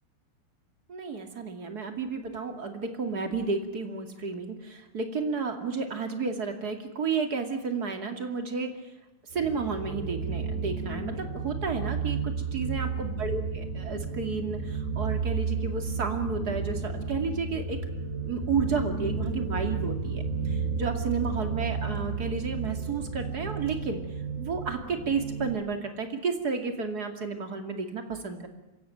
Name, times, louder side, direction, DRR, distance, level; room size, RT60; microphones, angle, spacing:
voice 1, 0.9-8.7 9.3-17.8 18.3-24.0 24.4-28.5, right 4 dB, 35° right, 6 dB, 1.6 m, -32 dB
sound 1, 9.3-25.5, right 5 dB, 15° right, 4.4 m, -32 dB
26.5 x 16.0 x 9.1 m, 0.97 s
omnidirectional pair, 5.6 m